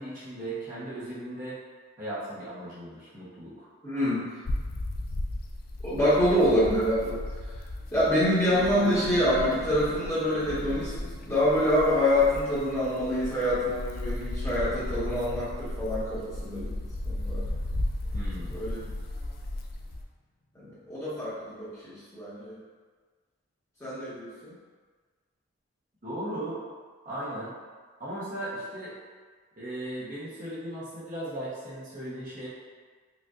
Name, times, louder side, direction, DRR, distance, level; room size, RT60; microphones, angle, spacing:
voice 1, 0.0-1.6 2.0-3.7 18.1-18.6 26.0-26.6 27.0-27.5 28.0-28.9 29.6-32.5, right 1 dB, 40° right, -9 dB, 1.0 m, -37 dB
voice 2, 3.8-4.2 5.8-7.2 7.9-10.9 11.3-16.7 17.0-17.4 18.5-18.8 20.5-22.6 23.8-24.5, equal, 15° left, -12 dB, 1.3 m, -26 dB
sound 1, 4.5-20.0, left 1 dB, 45° left, 0.3 m, -35 dB
sound 2, 8.4-18.0, left 1 dB, 75° left, 0.8 m, -45 dB
5.0 x 2.5 x 2.4 m, 1.5 s
head